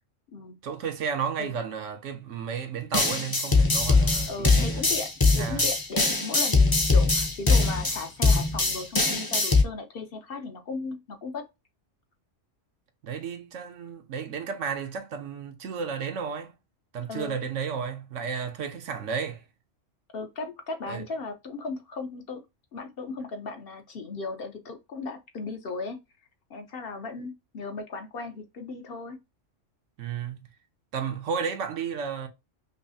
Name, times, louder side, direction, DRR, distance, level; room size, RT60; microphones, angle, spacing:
voice 1, 0.6-4.8 5.4-5.7 13.0-16.5 16.9-19.4 20.9-21.0 30.0-30.5 30.9-32.3, right 6 dB, 80° right, 1.1 m, -33 dB
sound 1, 2.9-9.6, left 3 dB, 25° left, 0.6 m, -22 dB
voice 2, 4.3-11.4 17.1-17.4 20.1-22.4 22.7-26.0 26.5-29.2, left 4 dB, 55° left, 0.8 m, -36 dB
5.4 x 2.0 x 2.7 m
omnidirectional pair, 1.3 m